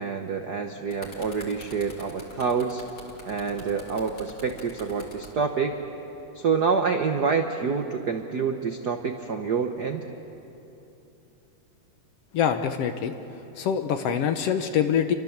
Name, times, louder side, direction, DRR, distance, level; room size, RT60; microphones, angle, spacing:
voice 1, 0.0-2.8 3.2-5.8 6.3-10.0, right 5 dB, 65° right, 4 dB, 1.0 m, -27 dB
sound 1, 0.9-5.3 6.2-6.4, left 1 dB, 30° left, 3.2 m, -45 dB
voice 2, 12.3-13.1 13.6-15.1, left 8 dB, 65° left, 8 dB, 1.7 m, -24 dB
29.5 x 24.0 x 7.3 m, 3.0 s
omnidirectional pair, 3.3 m